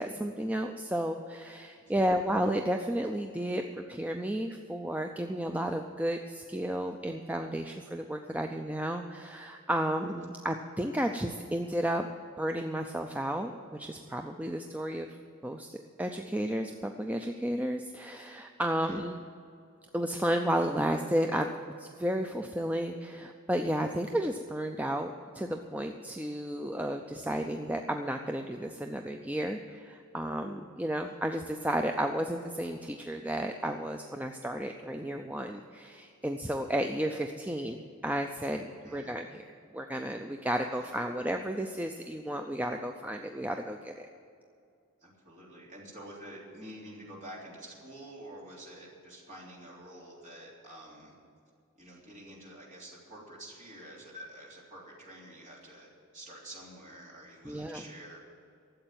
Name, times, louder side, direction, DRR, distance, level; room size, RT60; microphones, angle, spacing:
voice 1, 0.0-12.1 12.4-15.1 15.4-19.2 19.9-21.5 21.8-38.7 38.9-44.1 57.4-57.8, right 1 dB, 5° right, 4 dB, 0.4 m, -32 dB
voice 2, 1.8-2.2 18.7-19.0 37.4-37.6 38.5-39.1 40.7-41.0 45.0-51.1 51.8-55.9 56.1-58.2, right 1 dB, 35° right, -4 dB, 3.3 m, -48 dB
13.0 x 7.9 x 9.2 m, 2.5 s
head